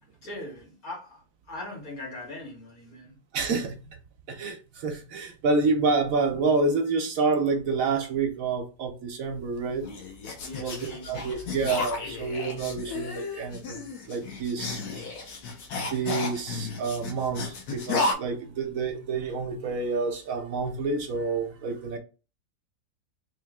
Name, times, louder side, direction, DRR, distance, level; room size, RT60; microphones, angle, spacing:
voice 1, 0.2-3.2 10.4-11.6, left 1 dB, 65° left, 2.2 m, -41 dB
voice 2, 3.3-3.8 4.3-9.8 10.6-15.2 15.7-22.0, right 4 dB, 65° right, 1.1 m, -28 dB
sound 1, 9.3-18.1, left 3 dB, 90° left, 1.4 m, -33 dB
3.4 x 3.1 x 3.5 m
omnidirectional pair, 1.6 m